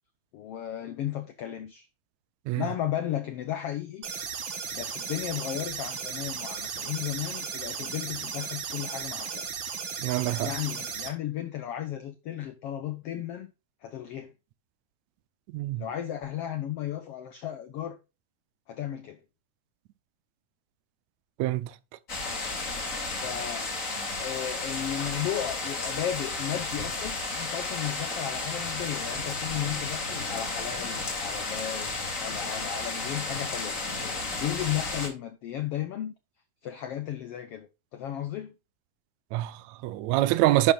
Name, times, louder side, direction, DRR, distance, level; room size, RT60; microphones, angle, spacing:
voice 1, 0.3-1.9 2.6-4.1 4.7-9.4 10.4-13.5 13.8-14.3 15.8-18.0 18.7-19.2 23.2-23.7 24.1-33.8 34.2-36.1 36.6-38.5, left 11 dB, 75° left, 1.3 m, -34 dB
sound 1, 4.0-11.1, right 6 dB, 50° right, 1.8 m, -35 dB
voice 2, 10.0-10.5 15.5-15.9 21.4-21.7 24.0-24.2 39.3-40.7, right 16 dB, 75° right, 1.7 m, -26 dB
sound 2, 22.1-35.1, left 3 dB, 25° left, 2.3 m, -33 dB
11.0 x 8.7 x 2.4 m
omnidirectional pair, 3.9 m